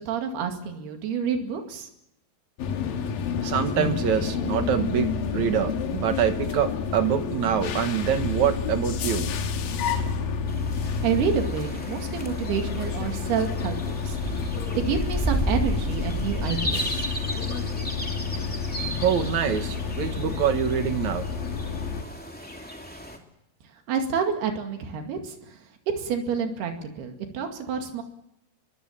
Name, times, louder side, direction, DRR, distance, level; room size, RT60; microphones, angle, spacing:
voice 1, 0.0-1.9 11.0-14.2 14.8-17.1 23.9-25.6 26.0-28.0, right 7 dB, 85° right, 4 dB, 4.3 m, -29 dB
sound 1, 2.6-22.0, left 6 dB, 70° left, 3.2 m, -30 dB
voice 2, 3.4-9.3 19.0-21.3, right 9 dB, 60° right, 8 dB, 2.4 m, -25 dB
sound 2, 10.5-23.2, equal, 5° left, 2.1 m, -33 dB
25.0 x 22.5 x 7.4 m, 0.83 s
omnidirectional pair, 4.5 m